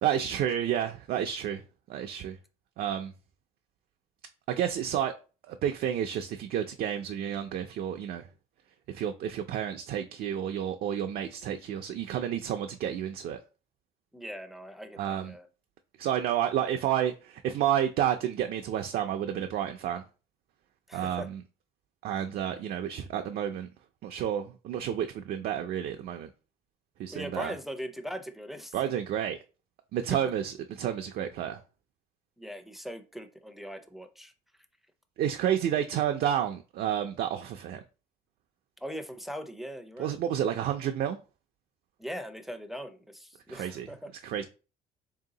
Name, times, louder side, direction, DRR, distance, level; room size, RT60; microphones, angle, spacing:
voice 1, 0.0-1.6 1.9-2.4 2.8-3.1 4.5-5.1 5.4-8.3 8.9-13.4 15.0-15.3 16.0-20.0 20.9-21.4 22.0-23.7 24.0-26.3 27.0-27.5 28.7-29.4 29.9-31.6 35.2-37.8 40.0-41.2 43.5-43.9 44.2-44.4, right 10 dB, 60° right, 0.4 m, -30 dB
voice 2, 14.1-15.5 20.9-21.3 27.1-28.8 30.1-30.2 32.4-34.3 38.8-40.2 42.0-44.1, equal, ahead, 0.5 m, -40 dB
3.4 x 2.8 x 3.8 m
cardioid pair, 110°, 17 cm